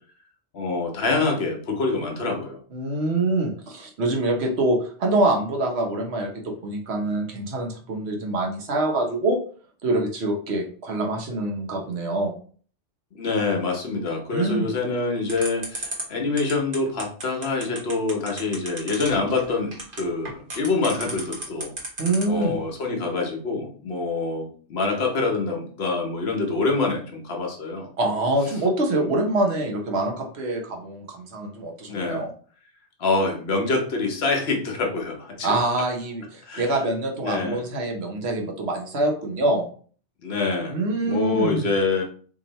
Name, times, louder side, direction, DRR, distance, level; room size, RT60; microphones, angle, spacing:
voice 1, 0.5-2.6 13.1-21.7 22.3-27.9 28.9-29.1 31.9-32.2 33.0-35.5 36.4-36.8 37.2-37.6 40.2-40.8 41.1-42.0, left 3 dB, 65° left, 2 dB, 1.1 m, -26 dB
voice 2, 2.7-9.4 9.8-12.3 14.3-14.7 22.0-22.6 28.0-32.3 35.4-39.7 40.7-41.6, right 2 dB, 70° right, 2 dB, 1.1 m, -25 dB
sound 1, 15.3-22.4, right 2 dB, 50° right, 1.3 m, -33 dB
2.9 x 2.7 x 3.9 m, 0.43 s
omnidirectional pair, 1.1 m